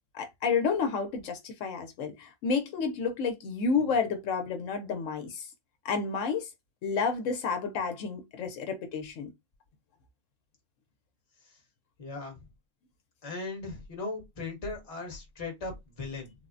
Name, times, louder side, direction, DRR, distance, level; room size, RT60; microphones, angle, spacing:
voice 1, 0.1-5.5 5.8-6.5 6.8-9.3, left 5 dB, 80° left, 0.9 m, -30 dB
voice 2, 12.0-12.4 13.2-16.3, left 3 dB, 30° left, 0.9 m, -38 dB
3.4 x 2.0 x 2.5 m
omnidirectional pair, 1.3 m